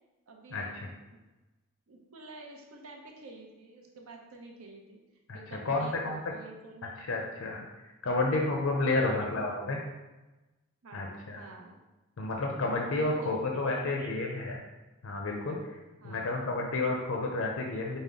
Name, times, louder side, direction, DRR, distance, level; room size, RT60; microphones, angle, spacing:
voice 1, 0.3-0.8 1.9-5.0 5.3-7.0 8.0-8.2 8.9-9.7 10.8-11.8 13.0-14.4 16.0-16.3, right 2 dB, 80° right, 1 dB, 0.6 m, -48 dB
voice 2, 5.6-6.3 7.0-7.7 8.0-9.8 10.9-11.4 12.2-14.6 15.0-15.8 16.0-18.0, left 2 dB, 65° left, 0 dB, 0.5 m, -31 dB
5.2 x 2.0 x 3.5 m, 1.1 s
head